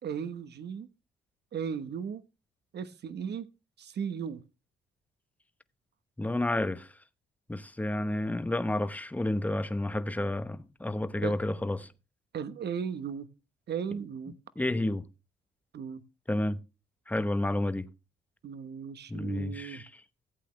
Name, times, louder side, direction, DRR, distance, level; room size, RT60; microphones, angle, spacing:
voice 1, 0.0-0.9 1.5-2.2 2.7-3.5 3.8-4.4 11.2-11.4 12.3-13.3 13.7-14.3 15.7-16.0 18.4-19.8, right 7 dB, 55° right, 1.2 m, -36 dB
voice 2, 6.2-6.9 7.5-11.9 13.9-14.0 14.6-15.0 16.3-16.6 17.1-17.9 19.1-19.8, left 1 dB, 10° left, 0.9 m, -30 dB
15.5 x 8.4 x 3.2 m
cardioid pair, 90°, 20 cm